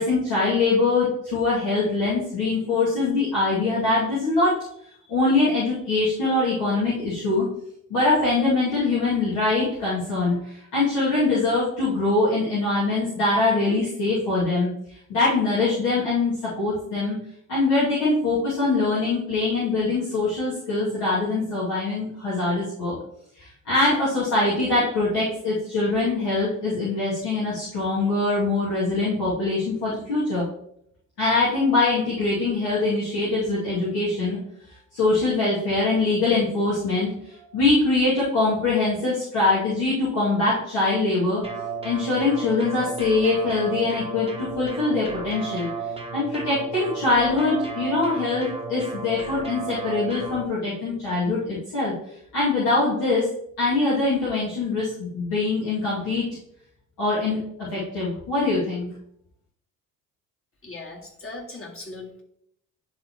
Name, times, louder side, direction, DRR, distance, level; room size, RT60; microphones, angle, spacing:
voice 1, 0.0-4.5 5.1-7.5 7.9-14.7 15.1-17.2 17.5-22.9 23.4-30.4 31.2-34.4 34.9-37.1 37.5-41.4 41.8-45.7 46.1-51.9 52.3-53.2 53.6-56.3 57.0-58.9, left 3 dB, 70° left, -10 dB, 2.6 m, -23 dB
sound 1, 41.4-50.5, right 4 dB, 15° right, 1.1 m, -34 dB
voice 2, 60.6-62.2, left 2 dB, 30° left, 0 dB, 2.0 m, -38 dB
10.5 x 3.8 x 3.1 m, 0.72 s
hypercardioid pair, 45°, 42 cm